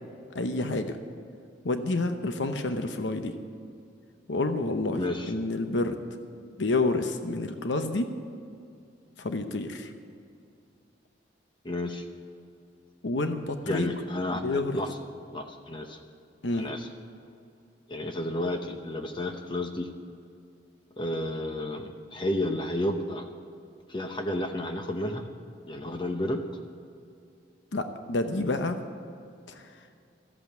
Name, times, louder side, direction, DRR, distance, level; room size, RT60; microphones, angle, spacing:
voice 1, 0.3-1.0 1.6-3.3 4.3-6.0 6.6-8.1 9.2-9.9 13.0-13.9 14.4-14.8 16.4-16.7 27.7-28.8 29.5-29.7, left 2 dB, 85° left, 7 dB, 0.9 m, -29 dB
voice 2, 4.9-5.3 11.6-12.0 13.6-15.0 15.3-16.0 16.5-16.9 17.9-19.9 21.0-23.3 23.9-25.2 25.7-26.4, left 1 dB, 25° left, 5 dB, 0.8 m, -31 dB
14.0 x 8.2 x 8.8 m, 2.4 s
head